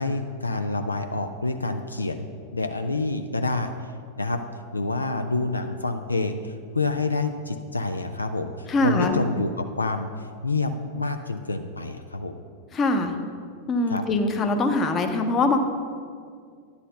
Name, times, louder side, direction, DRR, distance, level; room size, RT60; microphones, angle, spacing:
voice 1, 0.0-3.7 4.2-4.4 4.7-12.3 13.9-14.0, left 3 dB, 80° left, 7 dB, 0.4 m, -28 dB
voice 2, 8.7-9.2 12.7-13.1 13.7-15.6, left 2 dB, 25° left, 5 dB, 0.8 m, -23 dB
10.0 x 4.1 x 6.6 m, 2.1 s
figure-of-eight pair, 90°, 0 cm